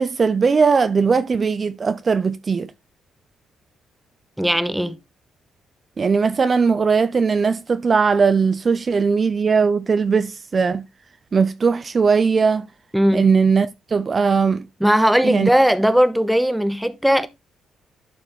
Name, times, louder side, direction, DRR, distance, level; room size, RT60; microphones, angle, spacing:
voice 1, 0.0-2.7 6.0-10.9 11.3-12.7 13.1-14.7 15.2-15.5, right 5 dB, 35° right, 0.6 m, -19 dB
voice 2, 4.4-5.0 12.9-13.3 14.8-17.3, equal, 5° right, 1.0 m, -18 dB
11.5 x 5.8 x 3.1 m
cardioid pair, 90°, 0 cm